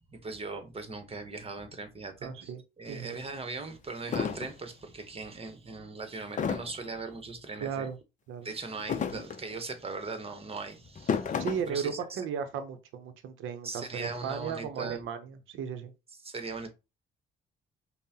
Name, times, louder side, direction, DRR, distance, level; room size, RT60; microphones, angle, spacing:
voice 1, 0.1-7.9 8.4-12.2 13.6-15.0 16.2-16.7, right 3 dB, 30° right, 0.9 m, -39 dB
voice 2, 2.2-2.6 2.9-3.2 7.6-8.0 8.3-8.5 11.4-15.9, right 7 dB, 80° right, 0.7 m, -35 dB
sound 1, 2.9-3.0 3.6-3.7 4.1-4.5 6.4-6.9 8.7-9.5 10.8-11.7, left 6 dB, 40° left, 0.5 m, -32 dB
5.3 x 2.1 x 2.8 m
cardioid pair, 90°, 20 cm